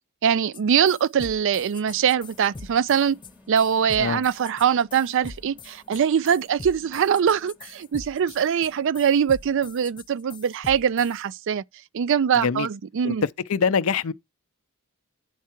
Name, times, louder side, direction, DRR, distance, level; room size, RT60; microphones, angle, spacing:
voice 1, 0.2-3.2 3.5-11.6 11.9-13.3, right 8 dB, 60° right, 0.4 m, -22 dB
sound 1, 0.5-0.6 0.9-11.2, left 4 dB, 20° left, 0.4 m, -42 dB
sound 2, 1.9-10.0, left 2 dB, 5° right, 2.1 m, -56 dB
voice 2, 12.3-12.7 13.0-13.1 13.5-14.1, left 6 dB, 70° left, 0.5 m, -24 dB
9.3 x 4.6 x 4.4 m
head